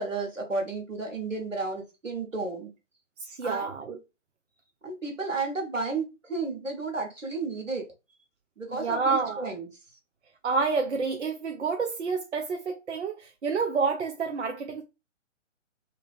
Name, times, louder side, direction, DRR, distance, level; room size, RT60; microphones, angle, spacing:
voice 1, 0.0-2.7 3.4-3.7 4.8-7.9 8.6-9.7, right 3 dB, 80° right, 1.2 m, -32 dB
voice 2, 3.2-4.0 8.7-9.5 10.4-14.8, right 4 dB, 65° right, 0.5 m, -29 dB
2.8 x 2.5 x 3.4 m
figure-of-eight pair, 130°, 38 cm